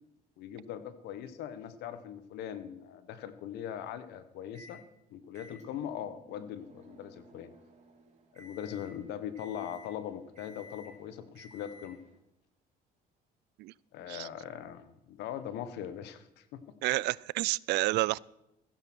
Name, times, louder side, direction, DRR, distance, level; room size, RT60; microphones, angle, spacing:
voice 1, 0.4-4.8 5.1-7.5 8.3-12.0 13.9-16.6, left 9 dB, 85° left, 12 dB, 1.4 m, -41 dB
Microwave oven, 4.5-4.8 5.3-12.2, left 1 dB, 45° right, 3.3 m, -55 dB
voice 2, 16.8-18.2, right 20 dB, 80° right, 24 dB, 0.4 m, -29 dB
15.0 x 10.5 x 6.2 m, 0.86 s
cardioid pair, 110°, 17 cm